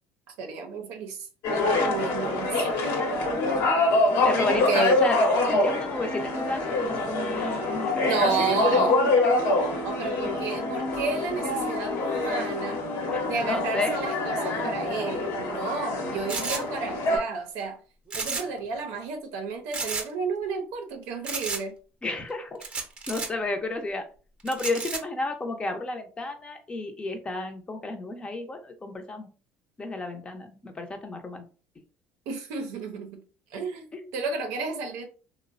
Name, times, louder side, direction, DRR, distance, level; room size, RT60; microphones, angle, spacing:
voice 1, 0.4-1.3 1.8-3.0 3.4-3.6 4.5-5.0 8.0-9.1 9.6-12.9 13.3-17.8 18.1-21.7 32.3-33.2 33.5-33.9 34.1-35.1, right 4 dB, 80° right, 0.5 m, -31 dB
sound 1, 1.4-17.2, left 2 dB, 75° left, 0.9 m, -25 dB
voice 2, 4.2-5.2 5.5-8.9 9.2-9.3 12.5-12.6 13.1-14.0 16.7-16.9 22.0-22.6 23.1-24.1 24.4-29.3 29.8-31.4 33.9-34.1, left 2 dB, 20° left, 0.6 m, -32 dB
sound 2, 16.3-16.6 18.1-18.6 18.9-19.0 19.7-20.1 21.3-21.6 22.6-23.3 24.5-25.0, right 4 dB, 25° right, 0.7 m, -32 dB
3.1 x 2.0 x 2.4 m
supercardioid pair, 105°, 5 cm